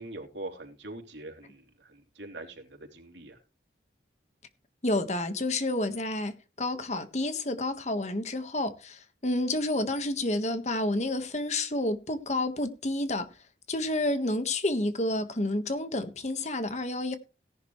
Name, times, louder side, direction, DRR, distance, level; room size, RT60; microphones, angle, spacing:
voice 1, 0.0-3.4, right 2 dB, 80° right, 3.5 m, -43 dB
voice 2, 4.8-13.3 13.7-17.2, left 1 dB, 40° left, 1.5 m, -30 dB
17.5 x 11.0 x 3.2 m
head